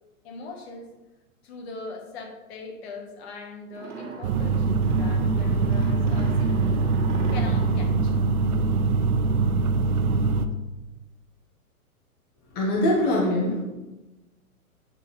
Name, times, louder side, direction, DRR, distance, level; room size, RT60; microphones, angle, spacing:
voice 1, 0.2-0.9 1.4-8.3 10.4-10.5, left 3 dB, 45° left, 3 dB, 1.3 m, -41 dB
sound 1, 3.7-9.1, right 4 dB, 55° right, 1.7 m, -40 dB
sound 2, 4.2-10.5, right 4 dB, 75° right, 0.7 m, -23 dB
voice 2, 12.5-13.6, left 1 dB, 20° left, -2 dB, 1.0 m, -22 dB
8.1 x 3.7 x 4.0 m, 1.1 s
hypercardioid pair, 130°, 44 cm